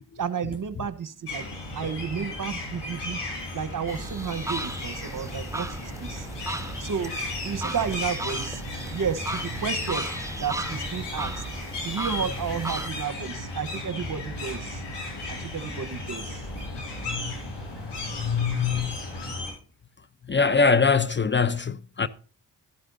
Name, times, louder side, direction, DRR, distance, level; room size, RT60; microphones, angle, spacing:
voice 1, 0.2-1.4 1.7-3.2 3.5-6.3 6.8-7.1 7.4-8.6 8.9-10.1 10.4-11.3 11.8-14.8 15.3-16.4, right 7 dB, 50° right, 1.0 m, -32 dB
sound 1, 1.3-19.5, left 2 dB, 75° left, 5.3 m, -35 dB
sound 2, 3.9-12.9, right 2 dB, 5° right, 1.2 m, -36 dB
voice 2, 17.9-19.0 20.3-22.1, left 5 dB, 25° left, 0.6 m, -23 dB
12.0 x 12.0 x 2.6 m
supercardioid pair, 50°, 42 cm